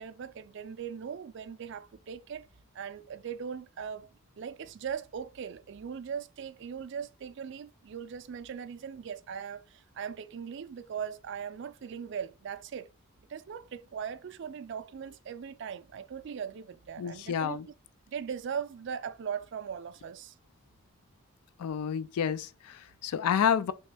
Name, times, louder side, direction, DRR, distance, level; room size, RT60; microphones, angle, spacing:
voice 1, 0.0-2.5 2.7-4.1 4.4-12.9 13.3-17.6 18.1-20.3, right 7 dB, 55° right, 0.3 m, -39 dB
voice 2, 17.0-17.7 21.6-23.7, left 8 dB, 85° left, 0.3 m, -29 dB
3.2 x 3.1 x 3.3 m
head